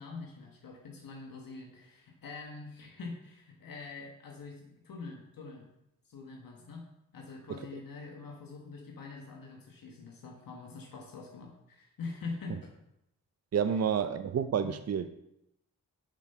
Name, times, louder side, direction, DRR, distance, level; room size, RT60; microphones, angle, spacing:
voice 1, 0.0-5.7 6.0-6.9 7.1-12.7 14.6-14.7, left 4 dB, 75° left, 0 dB, 1.4 m, -44 dB
voice 2, 13.5-15.1, right 7 dB, 45° right, 10 dB, 0.6 m, -29 dB
7.2 x 5.4 x 5.6 m, 0.83 s
cardioid pair, 50°, 34 cm